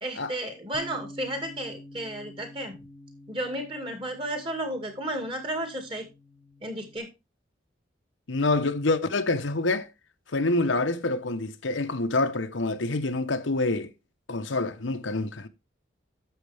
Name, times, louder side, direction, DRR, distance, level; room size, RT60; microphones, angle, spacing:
voice 1, 0.0-2.8 3.3-6.0 6.6-7.1, right 1 dB, 25° right, 2.2 m, -33 dB
Bass guitar, 0.7-7.0, left 1 dB, ahead, 1.0 m, -48 dB
voice 2, 8.3-9.9 10.3-13.9 14.3-15.5, left 2 dB, 85° left, 1.0 m, -26 dB
10.5 x 7.3 x 3.4 m
head